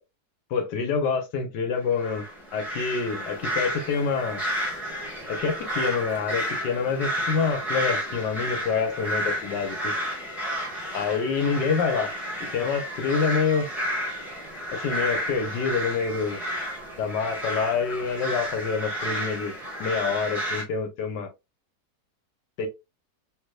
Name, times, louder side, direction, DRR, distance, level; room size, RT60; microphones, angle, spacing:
voice 1, 0.5-2.2 2.5-4.4 5.3-9.9 10.9-12.1 12.5-13.7 14.7-16.4 17.0-21.3 22.6-22.7, left 5 dB, 80° left, 1.4 m, -27 dB
sound 1, 2.0-20.6, equal, ahead, 1.1 m, -31 dB
3.4 x 3.0 x 2.2 m
omnidirectional pair, 1.9 m